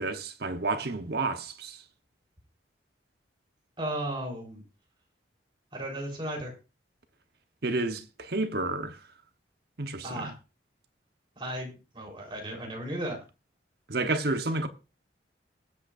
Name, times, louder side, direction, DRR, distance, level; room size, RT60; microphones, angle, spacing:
voice 1, 0.0-1.8 7.6-9.0 9.8-10.3 13.9-14.7, right 2 dB, 55° right, 1.1 m, -30 dB
voice 2, 3.8-4.6 5.7-6.5 10.0-10.3 11.4-13.2, right 1 dB, 25° right, 3.9 m, -35 dB
20.0 x 8.0 x 2.6 m
head